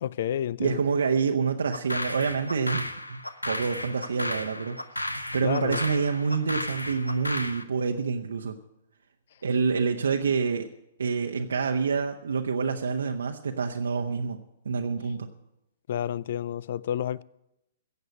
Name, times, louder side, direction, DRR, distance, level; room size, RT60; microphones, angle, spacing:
voice 1, 0.0-0.8 5.4-5.8 15.9-17.2, left 10 dB, 55° left, 0.4 m, -30 dB
voice 2, 0.6-4.8 5.3-8.6 9.4-10.7 11.0-14.4 14.6-15.3, right 5 dB, 70° right, 0.9 m, -27 dB
sound 1, 1.7-7.6, left 1 dB, 90° left, 0.9 m, -34 dB
15.0 x 7.9 x 8.4 m
figure-of-eight pair, 115°, 0 cm